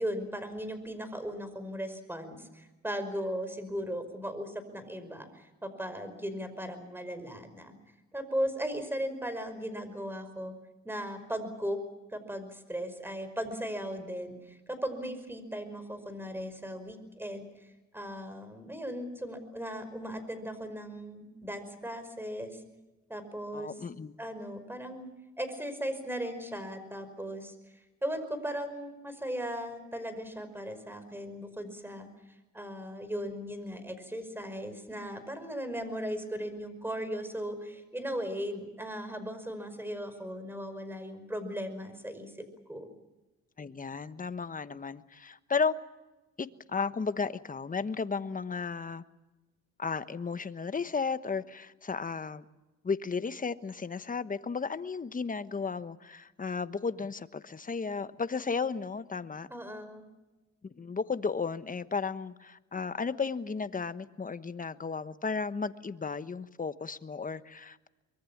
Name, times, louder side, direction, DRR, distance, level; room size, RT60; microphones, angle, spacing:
voice 1, 0.0-7.7 8.1-10.5 10.8-11.8 12.1-17.5 17.9-22.6 23.1-23.7 24.2-25.1 25.4-42.9 59.5-60.0, equal, 5° right, 10 dB, 5.3 m, -37 dB
voice 2, 23.5-24.1 43.6-45.7 46.4-49.0 49.8-52.5 52.8-59.5 60.6-67.9, left 5 dB, 25° left, 12 dB, 1.2 m, -34 dB
24.5 x 22.5 x 7.3 m, 1.1 s
cardioid pair, 90°, 30 cm